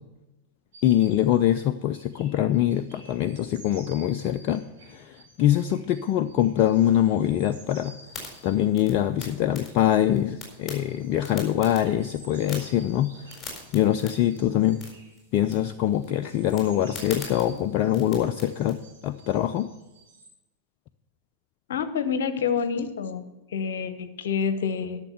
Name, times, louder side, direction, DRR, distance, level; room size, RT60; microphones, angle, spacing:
sound 1, 0.7-20.3, right 2 dB, 60° right, 4.2 m, -53 dB
voice 1, 0.8-8.0 8.4-13.4 13.7-14.8 15.3-19.7, left 11 dB, 40° left, 10 dB, 0.4 m, -24 dB
sound 2, 8.0-18.8, left 3 dB, 15° left, 4.3 m, -44 dB
voice 2, 21.7-23.2 23.5-25.0, left 6 dB, 60° left, 11 dB, 0.9 m, -27 dB
12.0 x 6.6 x 6.9 m, 1.0 s
figure-of-eight pair, 90°, 0 cm